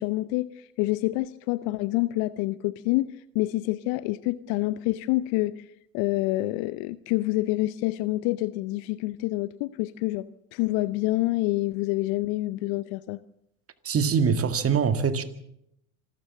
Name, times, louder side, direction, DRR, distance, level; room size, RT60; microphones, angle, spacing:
voice 1, 0.0-5.7 5.9-10.3 10.5-13.2, left 19 dB, 50° left, 17 dB, 0.7 m, -27 dB
voice 2, 13.8-15.2, right 6 dB, 30° right, 10 dB, 2.1 m, -23 dB
26.0 x 14.0 x 7.4 m, 0.79 s
hypercardioid pair, 80°, 46 cm